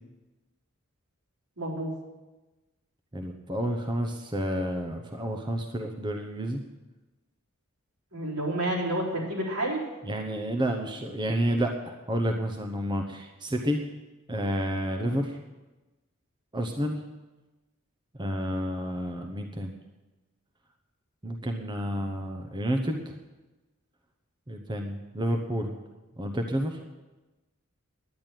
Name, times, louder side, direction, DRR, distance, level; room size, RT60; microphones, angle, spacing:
voice 1, 1.6-1.9 8.1-9.8, right 1 dB, 80° right, -4 dB, 4.3 m, -29 dB
voice 2, 3.1-6.6 10.0-13.8 14.3-15.4 16.5-17.0 18.2-19.7 21.2-23.2 24.5-25.8 26.2-26.8, equal, 20° right, 4 dB, 0.9 m, -30 dB
10.5 x 9.5 x 9.1 m, 1.1 s
head